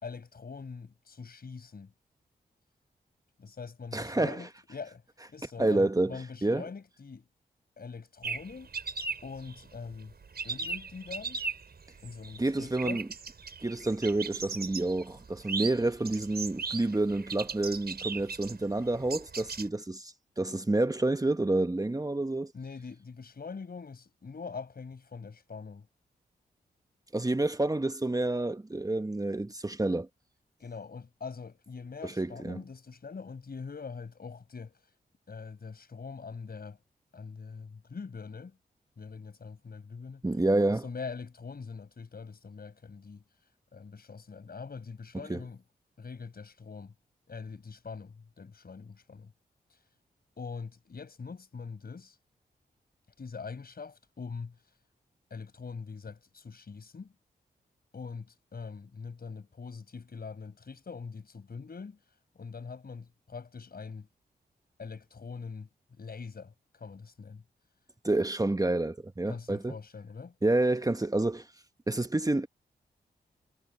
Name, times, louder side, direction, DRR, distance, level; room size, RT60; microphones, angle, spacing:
voice 1, 0.0-1.9 3.4-5.0 5.3-7.2 7.8-8.7 9.2-10.1 10.4-11.4 12.0-13.0 22.5-25.9 30.6-34.8 35.3-36.8 37.1-38.6 39.0-40.2 40.7-43.2 43.7-45.6 46.0-46.9 47.3-49.3 50.4-52.2 53.2-54.6 55.3-57.1 57.9-62.0 62.4-64.1 64.8-65.7 66.0-67.4 69.3-70.4, left 5 dB, 60° left, 5.7 m, -43 dB
voice 2, 3.9-4.5 5.6-6.7 12.4-13.0 13.6-22.5 27.1-30.1 32.0-32.6 40.2-40.8 45.3-45.4 68.0-69.8 70.4-71.5 71.9-72.5, right 2 dB, 20° right, 1.3 m, -29 dB
sound 1, 8.2-19.7, right 4 dB, 65° right, 6.0 m, -38 dB
cardioid pair, 45°, 18 cm